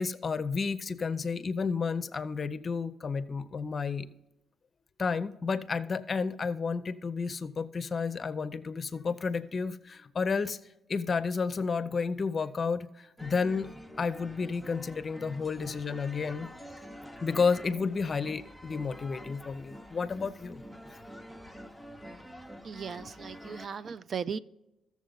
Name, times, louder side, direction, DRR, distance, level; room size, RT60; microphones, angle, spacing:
voice 1, 0.0-4.1 5.0-10.6 10.9-13.7 14.0-16.5 17.2-20.6, left 5 dB, 40° left, 13 dB, 0.6 m, -31 dB
sound 1, 13.2-23.7, equal, 5° right, 0.8 m, -47 dB
voice 2, 22.6-24.4, right 6 dB, 50° right, 15 dB, 0.3 m, -37 dB
13.5 x 7.2 x 3.9 m, 0.94 s
cardioid pair, 90°, 0 cm